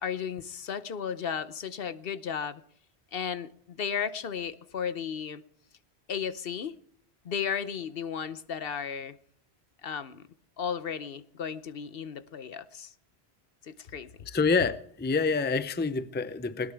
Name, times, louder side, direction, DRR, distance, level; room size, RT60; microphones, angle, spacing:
voice 1, 0.0-2.6 3.1-5.4 6.1-6.8 7.2-9.2 9.8-10.3 10.6-12.9 13.6-14.1, left 7 dB, 65° left, 1.0 m, -34 dB
voice 2, 14.3-16.7, left 4 dB, 15° left, 0.5 m, -27 dB
21.0 x 18.0 x 3.5 m
omnidirectional pair, 1.1 m